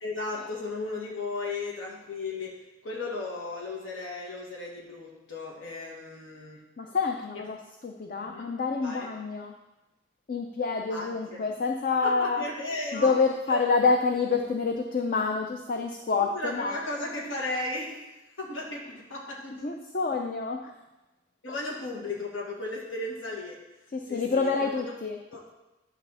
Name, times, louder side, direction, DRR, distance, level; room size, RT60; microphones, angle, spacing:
voice 1, 0.0-2.6 2.8-6.6 8.2-8.5 8.8-9.1 10.9-11.4 12.0-13.1 13.5-13.6 16.2-18.1 18.4-19.7 21.4-23.6 24.1-24.7 25.3-25.4, left 2 dB, 75° left, -2 dB, 1.6 m, -35 dB
voice 2, 6.8-7.6 7.8-9.5 10.3-12.4 12.9-16.8 19.6-20.7 21.5-21.6 23.9-25.2, left 4 dB, 45° left, 3 dB, 0.5 m, -27 dB
10.5 x 3.5 x 6.9 m, 1.0 s
head